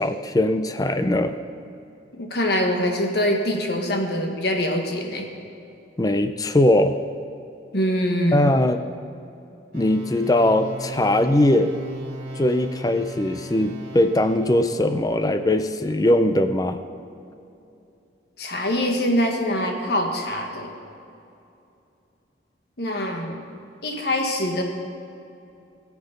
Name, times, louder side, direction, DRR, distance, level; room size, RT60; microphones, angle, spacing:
voice 1, 0.0-1.4 6.0-6.9 8.3-8.8 9.7-11.7 12.4-16.8, left 1 dB, 20° left, 9 dB, 0.5 m, -20 dB
voice 2, 2.1-5.3 7.7-8.5 18.4-20.7 22.8-23.4 23.8-24.6, left 1 dB, 60° left, 3 dB, 1.5 m, -24 dB
sound 1, 9.7-15.0, right 1 dB, 45° right, 3.0 m, -37 dB
21.0 x 7.1 x 5.2 m, 2.7 s
head